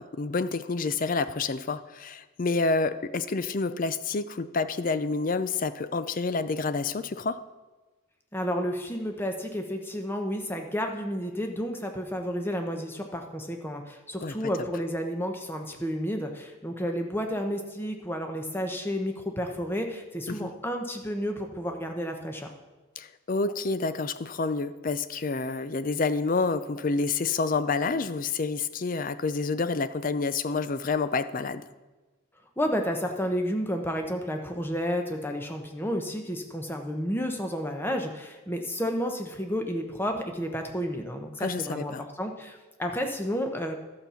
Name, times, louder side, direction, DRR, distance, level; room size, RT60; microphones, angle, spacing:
voice 1, 0.0-7.4 14.2-14.3 20.3-20.5 23.0-31.6 41.4-42.1, left 4 dB, 40° left, 13 dB, 0.4 m, -28 dB
voice 2, 8.3-22.5 32.6-43.7, equal, 10° left, 4 dB, 0.9 m, -31 dB
12.0 x 5.8 x 6.9 m, 1.2 s
head